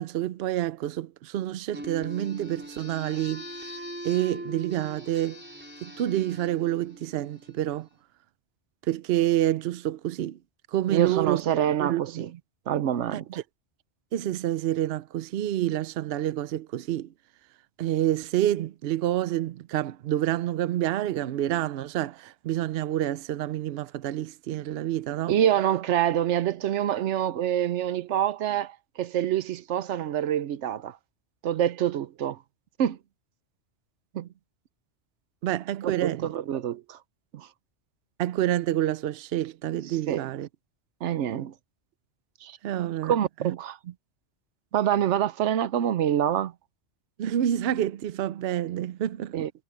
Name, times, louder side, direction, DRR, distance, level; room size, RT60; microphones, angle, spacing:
voice 1, 0.0-3.5 4.0-5.4 5.8-7.9 8.9-10.4 10.7-11.4 11.8-12.3 13.1-13.2 14.1-17.1 17.8-25.4 35.4-36.3 38.2-40.5 42.6-43.2 43.4-43.6 47.2-49.4, right 12 dB, 70° right, 0.8 m, -28 dB
sound 1, 1.7-7.8, equal, 10° right, 5.0 m, -41 dB
voice 2, 10.9-12.3 12.7-13.3 25.3-31.0 31.4-32.4 32.8-33.0 34.1-34.3 35.8-37.0 37.3-37.5 39.9-40.3 41.0-41.5 42.4-42.6 43.0-43.8 44.7-46.5 49.3-49.5, right 10 dB, 90° right, 1.0 m, -26 dB
omnidirectional pair, 1.2 m